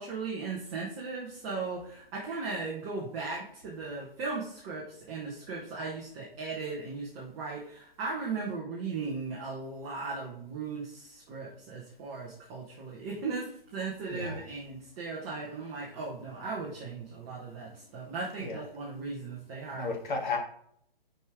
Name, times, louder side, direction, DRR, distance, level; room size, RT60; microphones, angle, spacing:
voice 1, 0.0-19.9, right 4 dB, 10° right, -4 dB, 0.4 m, -37 dB
voice 2, 14.1-14.4 18.4-18.6 19.8-20.4, left 4 dB, 55° left, 2 dB, 1.8 m, -33 dB
5.3 x 4.8 x 4.3 m, 0.65 s
figure-of-eight pair, 140°, 29 cm